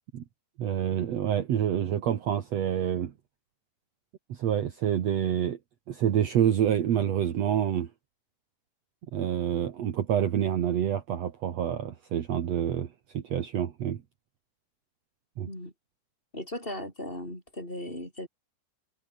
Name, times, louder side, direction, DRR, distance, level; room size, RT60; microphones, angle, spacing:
voice 1, 0.6-3.1 4.3-5.6 5.9-7.9 9.1-12.9 13.1-14.0 15.4-15.5, right 10 dB, 60° right, 2.5 m, -27 dB
voice 2, 16.3-18.3, left 1 dB, 15° left, 7.1 m, -37 dB
omnidirectional pair, 3.7 m